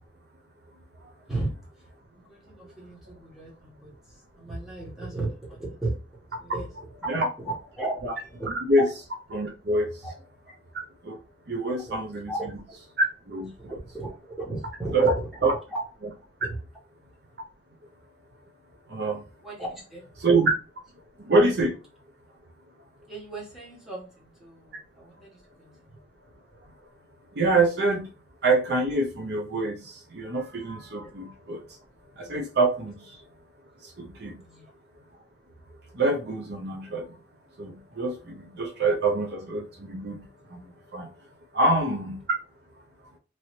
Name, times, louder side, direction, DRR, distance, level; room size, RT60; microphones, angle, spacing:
voice 1, 2.1-4.0 4.4-6.0 6.3-6.7 7.0-8.5 8.8-8.9 10.0-10.1 12.3-12.7 13.6-15.1 15.7-15.8 16.4-16.6 19.4-20.0 23.1-26.0 34.3-34.7, right 2 dB, ahead, 1.2 m, -35 dB
voice 2, 8.5-8.9 9.3-9.9 11.1-11.2 11.5-12.3 13.3-13.5 14.9-15.1 15.4-15.5 18.9-19.2 20.2-20.5 21.3-21.7 27.4-28.1 28.4-29.7 30.1-31.6 32.2-32.9 34.2-34.3 36.0-37.0 37.6-38.1 38.6-39.6 39.9-40.1 40.9-41.1 41.5-42.2, right 2 dB, 60° right, 0.6 m, -24 dB
3.1 x 2.7 x 2.9 m
head